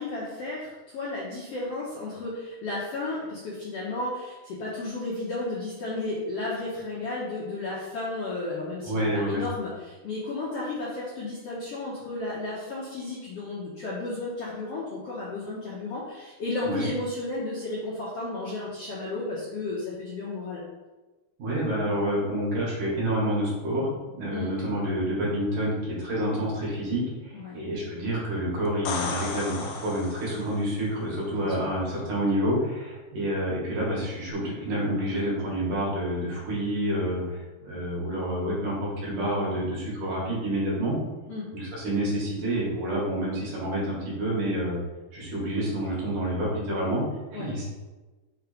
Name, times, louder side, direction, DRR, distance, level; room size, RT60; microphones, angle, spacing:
voice 1, 0.0-20.6 24.3-24.5 27.3-27.6 31.3-31.5 41.3-41.5 47.3-47.5, left 2 dB, 65° left, -7 dB, 1.6 m, -33 dB
voice 2, 8.8-9.4 16.6-16.8 21.4-23.9 24.1-41.0 41.5-44.8 45.1-47.0 47.3-47.6, right 1 dB, 60° right, -5 dB, 3.2 m, -28 dB
sound 1, 28.7-30.6 34.3-34.4, left 5 dB, 85° left, 1.6 m, -34 dB
6.5 x 3.5 x 5.0 m, 1.2 s
omnidirectional pair, 4.2 m